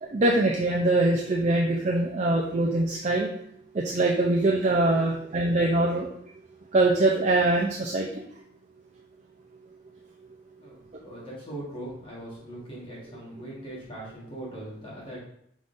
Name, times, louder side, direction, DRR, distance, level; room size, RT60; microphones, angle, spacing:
voice 1, 0.0-3.3 3.7-6.1 6.7-8.2, right 2 dB, 35° right, -2 dB, 0.4 m, -23 dB
voice 2, 10.6-15.2, right 1 dB, 25° left, -6 dB, 1.3 m, -40 dB
5.4 x 3.6 x 2.5 m, 0.70 s
head